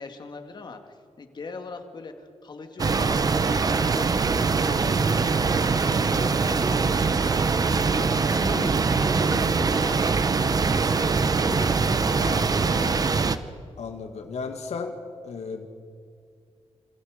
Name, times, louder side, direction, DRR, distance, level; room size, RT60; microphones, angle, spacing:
voice 1, 0.0-4.4 4.6-10.0 10.3-13.2, left 4 dB, 40° left, 6 dB, 2.2 m, -40 dB
sound 1, 2.8-13.4, right 4 dB, 35° right, 0.9 m, -23 dB
voice 2, 13.8-14.9 15.2-15.7, left 5 dB, 75° left, 4 dB, 2.0 m, -34 dB
28.0 x 27.5 x 5.1 m, 2.3 s
wide cardioid pair, 180°, 11 cm